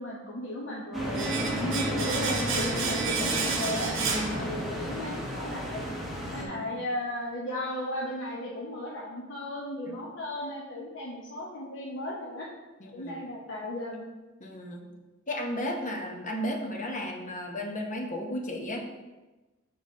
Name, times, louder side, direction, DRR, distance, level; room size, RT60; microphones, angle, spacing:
voice 1, 0.0-3.9 4.4-5.9 6.3-12.5 12.9-14.1, left 1 dB, 65° left, -4 dB, 0.8 m, -35 dB
sound 1, 0.9-6.4, equal, ahead, 1.1 m, -32 dB
Domestic sounds home sounds, 1.2-5.0 5.2-5.4, right 5 dB, 75° right, 0.9 m, -32 dB
voice 2, 4.0-4.6 6.4-6.8 12.8-13.2 14.4-14.9 15.3-18.8, left 1 dB, 40° left, 1 dB, 0.9 m, -34 dB
7.3 x 3.9 x 3.8 m, 1.1 s
head